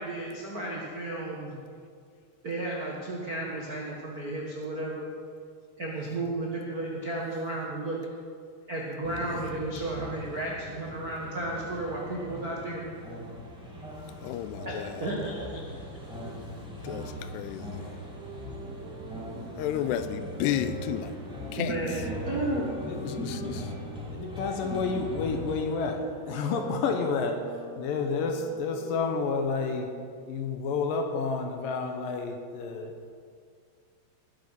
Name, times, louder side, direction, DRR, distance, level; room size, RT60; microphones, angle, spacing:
voice 1, 0.0-1.6 2.4-5.0 5.8-8.0 8.7-12.9 14.6-14.7 15.0-15.4 19.3-19.4 21.5-22.7, right 2 dB, 65° right, -4 dB, 0.9 m, -33 dB
sound 1, 9.0-25.7, equal, 10° right, 0.3 m, -40 dB
voice 2, 14.2-15.1 16.8-17.9 19.6-21.2 21.5-21.7 22.9-23.7, left 11 dB, 85° left, 12 dB, 2.7 m, -32 dB
sound 2, 18.1-23.6 24.2-29.4, right 3 dB, 90° right, 3.4 m, -44 dB
voice 3, 24.1-29.9 30.3-32.9, left 4 dB, 70° left, 4 dB, 2.3 m, -30 dB
20.0 x 8.0 x 5.9 m, 2.2 s
omnidirectional pair, 4.7 m